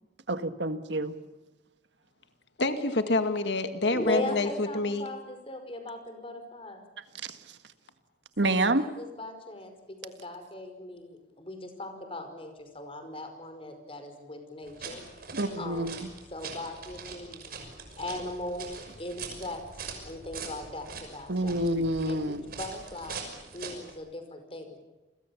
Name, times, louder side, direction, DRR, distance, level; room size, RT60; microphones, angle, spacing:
voice 1, 0.3-1.1 7.1-7.4 8.4-8.8 15.3-16.1 21.3-22.4, right 1 dB, 80° right, 10 dB, 1.7 m, -28 dB
voice 2, 2.6-5.1, left 2 dB, 75° left, 8 dB, 2.0 m, -27 dB
voice 3, 3.9-6.8 8.4-9.7 10.0-15.0 15.6-15.9 16.3-17.6 18.0-19.6 20.0-21.5 22.0-24.8, left 1 dB, 30° left, 7 dB, 5.1 m, -38 dB
sound 1, 14.6-23.9, right 4 dB, 55° right, 6.1 m, -43 dB
29.5 x 22.5 x 7.2 m, 1.1 s
head